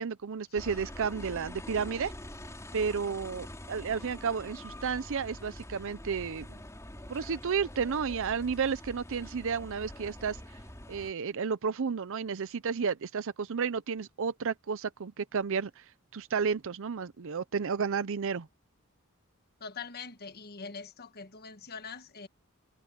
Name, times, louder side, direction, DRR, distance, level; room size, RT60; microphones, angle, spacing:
voice 1, 0.0-2.1 2.7-6.5 7.1-10.4 10.9-15.8 16.1-18.5, right 6 dB, 65° right, 0.6 m, -32 dB
sound 1, 0.6-11.1, left 1 dB, 15° left, 3.7 m, -45 dB
voice 2, 19.6-22.3, left 5 dB, 45° left, 1.4 m, -43 dB
head